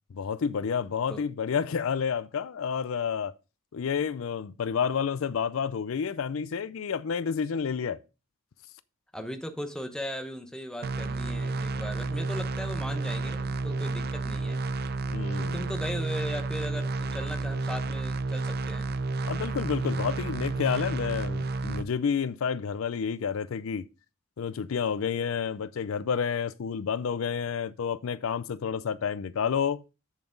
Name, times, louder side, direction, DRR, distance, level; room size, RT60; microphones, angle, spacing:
voice 1, 0.1-3.3 3.7-8.0 15.1-15.7 19.2-23.9 24.4-29.8, left 6 dB, 70° left, 0.4 m, -30 dB
voice 2, 9.1-14.8 15.4-19.0, equal, 5° left, 0.8 m, -38 dB
sound 1, 10.8-21.8, right 3 dB, 50° right, 0.6 m, -31 dB
8.0 x 7.1 x 3.8 m
head